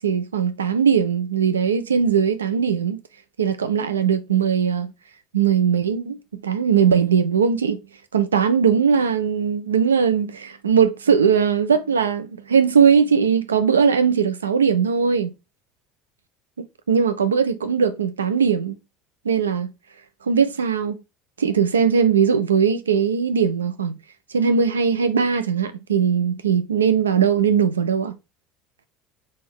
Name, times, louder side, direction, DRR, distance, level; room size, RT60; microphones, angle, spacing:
voice 1, 0.0-3.0 3.4-4.9 5.3-6.2 6.4-7.8 8.1-15.3 16.9-18.8 19.2-19.7 20.2-21.0 21.4-24.0 24.3-28.1, right 7 dB, 80° right, 0.5 m, -19 dB
3.6 x 3.1 x 4.4 m
figure-of-eight pair, 65°, 0 cm